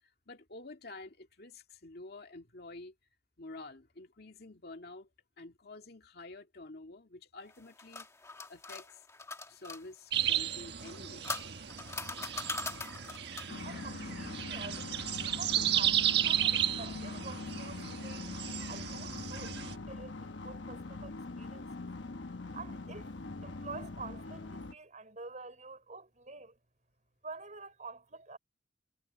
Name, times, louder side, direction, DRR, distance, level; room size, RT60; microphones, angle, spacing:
voice 1, 0.3-2.9 3.4-5.1 5.4-8.1 8.5-9.0 9.5-11.3, left 2 dB, 60° left, 2.2 m, -49 dB
sound 1, 7.5-9.8 10.8-13.6, left 3 dB, 15° left, 1.3 m, -41 dB
sound 2, 10.1-19.8, right 11 dB, 65° right, 1.5 m, -34 dB
sound 3, 13.5-24.7, left 3 dB, 90° left, 1.1 m, -42 dB
voice 2, 13.6-18.3 18.7-21.7 22.5-23.1 23.4-26.6 27.2-28.4, right 3 dB, 40° right, 5.9 m, -48 dB
head